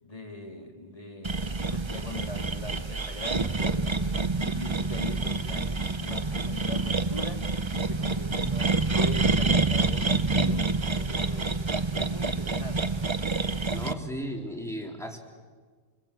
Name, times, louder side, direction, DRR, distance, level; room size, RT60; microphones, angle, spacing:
voice 1, 0.0-7.4 7.7-10.6 10.9-11.5 11.9-12.9, left 1 dB, 25° left, 2 dB, 3.3 m, -40 dB
sound 1, 1.2-13.9, right 3 dB, 25° right, 0.7 m, -27 dB
voice 2, 13.7-15.2, equal, ahead, 2 dB, 3.3 m, -35 dB
29.0 x 21.0 x 8.2 m, 1.5 s
omnidirectional pair, 1.4 m